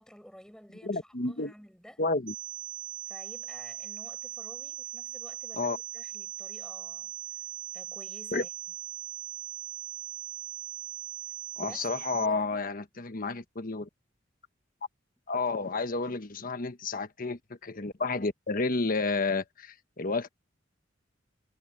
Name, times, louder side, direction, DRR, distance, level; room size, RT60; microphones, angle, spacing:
voice 1, 0.0-2.0 3.1-7.1 7.7-8.5 11.6-12.8, equal, 5° left, 6.4 m, -52 dB
voice 2, 0.8-1.5 2.0-2.3 5.5-5.8 8.3-8.4 11.6-13.9 15.3-20.3, left 3 dB, 50° left, 1.2 m, -31 dB
sound 1, 2.3-12.3, right 11 dB, 75° right, 2.6 m, -40 dB
head